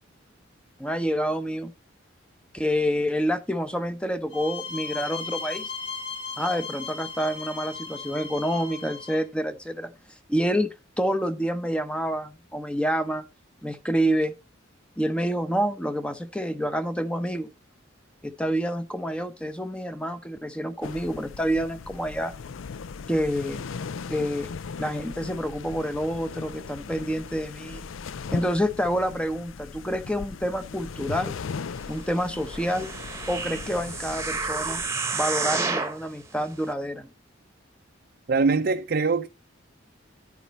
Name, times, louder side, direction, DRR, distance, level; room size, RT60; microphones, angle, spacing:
voice 1, 0.8-1.7 2.5-5.7 6.4-9.9 10.3-10.7 11.0-13.2 13.6-14.3 15.0-17.5 18.2-22.3 23.1-23.6 24.1-24.5 24.8-27.9 28.3-31.4 31.9-32.9 33.3-34.8 35.1-37.1, equal, 5° left, 0.7 m, -28 dB
sound 1, 4.3-9.2, left 5 dB, 60° left, 2.6 m, -36 dB
sound 2, 20.8-34.9, left 5 dB, 80° left, 0.5 m, -38 dB
sound 3, 32.5-36.0 36.6-36.7, right 4 dB, 15° right, 1.0 m, -30 dB
voice 2, 38.3-39.3, right 4 dB, 50° right, 0.6 m, -22 dB
10.5 x 9.5 x 3.1 m
head